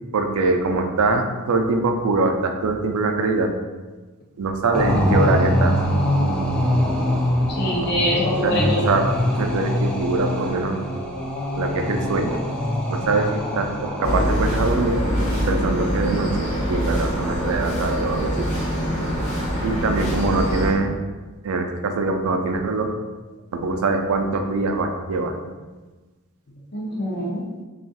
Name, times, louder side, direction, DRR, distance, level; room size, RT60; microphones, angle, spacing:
voice 1, 0.1-3.5 4.4-5.7 8.4-8.5 8.8-9.1 9.4-10.8 11.6-12.4 12.9-15.0 15.5-18.5 19.6-20.9 21.4-22.9 23.5-25.4, right 3 dB, 75° right, 5 dB, 0.4 m, -23 dB
sound 1, 4.7-14.6, equal, 5° left, 0.4 m, -23 dB
voice 2, 7.5-8.9 26.7-27.4, left 1 dB, 50° left, -3 dB, 0.6 m, -24 dB
sound 2, 14.0-20.7, equal, 75° left, 1.1 m, -24 dB
3.5 x 2.4 x 4.0 m, 1.3 s
head